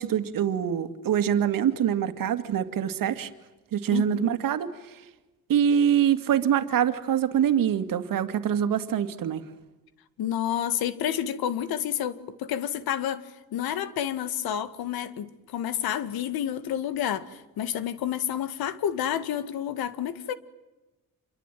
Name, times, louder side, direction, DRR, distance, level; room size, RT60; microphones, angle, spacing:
voice 1, 0.0-3.3 3.7-5.0 5.5-9.4, right 9 dB, 65° right, 10 dB, 2.3 m, -25 dB
voice 2, 3.9-4.3 10.2-13.2 13.5-20.3, left 10 dB, 90° left, 14 dB, 1.9 m, -29 dB
28.0 x 23.0 x 9.2 m, 1.0 s
cardioid pair, 120°, 36 cm